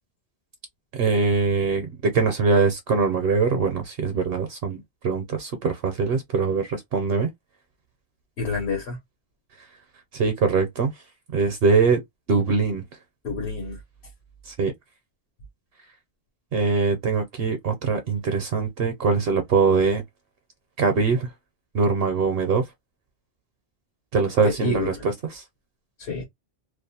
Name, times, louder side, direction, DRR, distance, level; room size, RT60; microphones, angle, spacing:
voice 1, 0.9-7.3 10.1-10.9 11.3-12.0 12.3-12.8 14.4-14.7 16.5-20.0 20.8-21.3 21.7-22.6 24.1-25.4, right 4 dB, 65° right, 0.8 m, -22 dB
voice 2, 8.4-9.0 13.2-13.8 24.4-25.0 26.0-26.3, left 3 dB, 75° left, 1.1 m, -28 dB
2.5 x 2.1 x 2.6 m
omnidirectional pair, 1.1 m